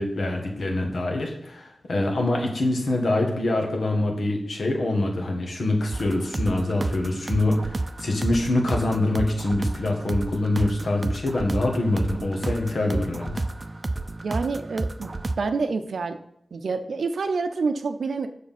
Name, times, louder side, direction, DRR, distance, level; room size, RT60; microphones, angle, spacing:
voice 1, 0.0-13.4, left 2 dB, 75° left, 1 dB, 1.9 m, -25 dB
sound 1, 5.9-15.4, right 2 dB, 40° right, 0.5 m, -31 dB
voice 2, 14.2-16.2 16.5-18.3, right 4 dB, 85° right, 8 dB, 0.6 m, -27 dB
7.2 x 6.4 x 6.0 m, 0.76 s
cardioid pair, 60°, 0 cm